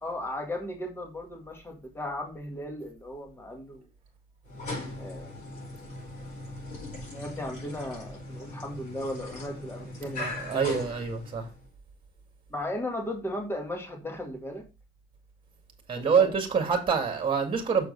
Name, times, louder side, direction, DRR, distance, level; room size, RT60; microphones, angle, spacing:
voice 1, 0.0-3.9 5.0-5.4 6.9-10.6 12.5-14.6 16.0-16.3, left 1 dB, 15° left, 1.9 m, -36 dB
sound 1, 4.4-11.7, left 2 dB, 50° left, 4.7 m, -39 dB
voice 2, 10.2-11.5 15.9-17.9, right 6 dB, 30° right, 2.0 m, -26 dB
6.9 x 4.5 x 5.4 m
cardioid pair, 110°, 17 cm